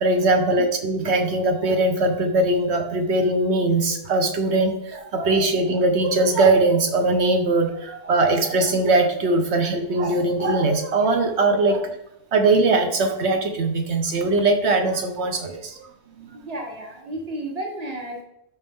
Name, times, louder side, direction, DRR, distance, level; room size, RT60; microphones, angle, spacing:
voice 1, 0.0-12.0 12.3-16.4, right 2 dB, 75° right, 5 dB, 1.3 m, -21 dB
voice 2, 16.3-18.2, right 1 dB, 35° right, 0 dB, 1.6 m, -32 dB
12.0 x 4.5 x 3.7 m, 0.79 s
omnidirectional pair, 1.1 m